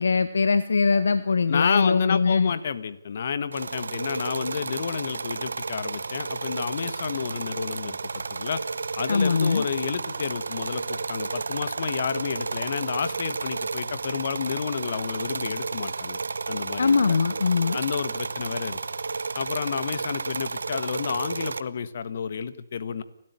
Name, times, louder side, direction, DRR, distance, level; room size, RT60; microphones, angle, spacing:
voice 1, 0.0-2.5 9.1-9.6 16.8-17.8, left 4 dB, 70° left, 13 dB, 1.0 m, -21 dB
voice 2, 1.5-8.0 8.3-8.6 9.0-16.2 16.5-17.2 17.7-18.8 19.3-23.0, left 6 dB, 55° left, 14 dB, 1.7 m, -30 dB
sound 1, 3.5-21.6, right 4 dB, 80° right, 1.0 m, -32 dB
29.5 x 12.5 x 9.7 m, 0.81 s
hypercardioid pair, 150°, 0 cm